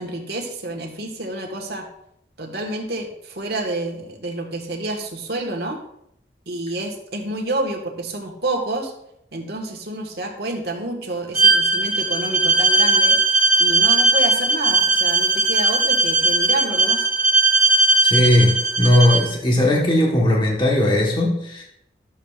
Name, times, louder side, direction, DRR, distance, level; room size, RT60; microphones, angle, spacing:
voice 1, 0.0-1.9 2.4-5.8 6.5-8.9 9.3-17.1, right 2 dB, 65° right, 1 dB, 1.5 m, -28 dB
Bowed string instrument, 11.3-19.3, right 3 dB, 5° right, 2.6 m, -18 dB
voice 2, 18.0-21.6, left 1 dB, 25° left, -2 dB, 1.3 m, -18 dB
12.0 x 7.2 x 2.4 m, 0.76 s
head